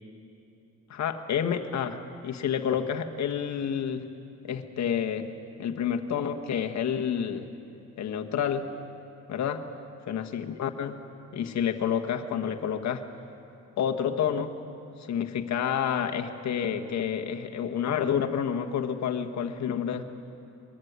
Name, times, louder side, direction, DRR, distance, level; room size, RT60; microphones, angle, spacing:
voice 1, 0.9-2.0 2.2-4.0 4.4-5.3 5.6-7.5 8.0-8.7 9.3-9.6 10.1-11.0 11.3-13.0 13.8-14.6 15.0-20.0, left 8 dB, 65° left, 5 dB, 1.5 m, -29 dB
22.5 x 14.0 x 9.6 m, 2.8 s
cardioid pair, 90°, 30 cm